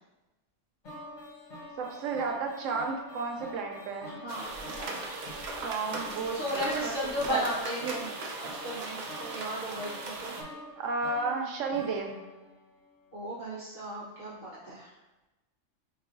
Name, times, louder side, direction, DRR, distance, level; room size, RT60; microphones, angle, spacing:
sound 1, 0.8-13.0, left 1 dB, 70° left, 1.4 m, -47 dB
voice 1, 1.8-4.2 5.6-6.9 7.3-7.4 10.8-12.2, right 4 dB, 80° right, 2 dB, 1.0 m, -32 dB
voice 2, 4.2-5.0 6.3-8.1 8.6-10.3 13.1-14.9, equal, 55° left, -10 dB, 1.2 m, -35 dB
sound 2, 4.3-10.4, right 3 dB, 65° right, 0.4 m, -38 dB
4.6 x 2.7 x 2.5 m, 1.1 s
omnidirectional pair, 1.3 m